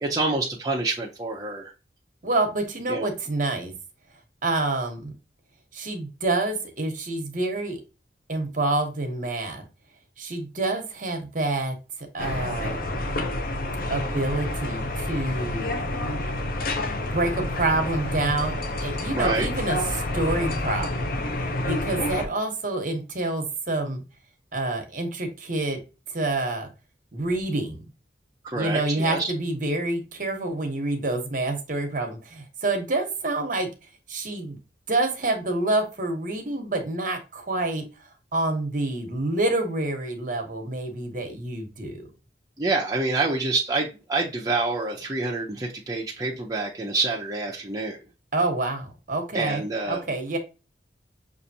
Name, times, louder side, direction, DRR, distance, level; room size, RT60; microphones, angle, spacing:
voice 1, 0.0-1.7 2.9-3.1 19.1-19.5 28.4-29.3 42.6-48.0 49.3-50.0, right 3 dB, 20° right, -3 dB, 0.6 m, -27 dB
voice 2, 2.2-3.7 4.4-5.1 5.7-7.8 8.3-9.6 10.2-11.7 12.1-13.1 13.9-15.8 17.1-21.2 21.7-24.0 24.5-25.8 26.1-26.7 27.1-27.8 28.5-33.7 34.1-34.6 34.9-37.8 38.3-42.1 48.3-50.4, right 2 dB, 50° right, 4 dB, 1.1 m, -27 dB
sound 1, 12.2-22.3, left 1 dB, 55° left, 0.6 m, -29 dB
6.6 x 2.6 x 2.7 m, 0.30 s
head